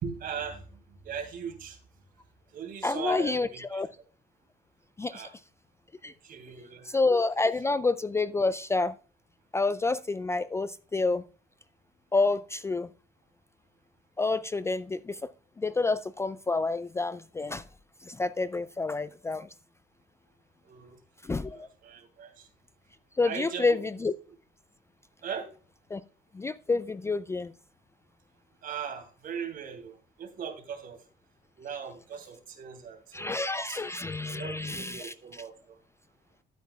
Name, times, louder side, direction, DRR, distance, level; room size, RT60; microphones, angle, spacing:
voice 1, 0.0-0.6 1.0-1.8 2.5-3.8 5.1-5.3 6.2-7.0 20.7-20.9 21.5-22.5 23.2-23.8 25.2-25.5 28.6-31.0 31.6-33.3 33.6-33.8 34.2-35.8, right 7 dB, 60° right, 5 dB, 3.0 m, -39 dB
voice 2, 2.8-3.9 5.0-5.3 6.0-6.1 6.9-8.9 9.5-11.2 12.1-12.9 14.2-15.2 15.6-17.6 18.1-19.5 21.3-21.7 23.2-24.1 25.9-26.0 26.3-27.5 33.1-35.4, left 3 dB, 15° left, 15 dB, 0.3 m, -28 dB
13.5 x 8.5 x 2.3 m, 0.36 s
cardioid pair, 110°, 17 cm